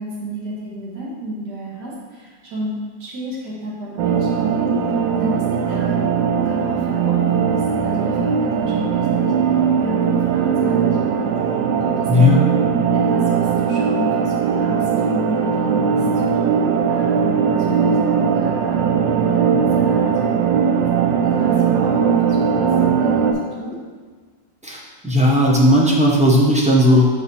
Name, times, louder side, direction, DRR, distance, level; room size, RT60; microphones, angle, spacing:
voice 1, 0.0-6.0 6.4-11.3 12.0-12.5 12.9-17.1 17.5-20.4 20.7-20.8 21.2-23.8, equal, 65° right, -6 dB, 2.1 m, -32 dB
sound 1, 4.0-23.3, right 6 dB, 85° right, 1.3 m, -19 dB
voice 2, 24.6-27.1, left 1 dB, 10° right, -4 dB, 0.3 m, -15 dB
6.3 x 5.0 x 4.2 m, 1.5 s
omnidirectional pair, 1.9 m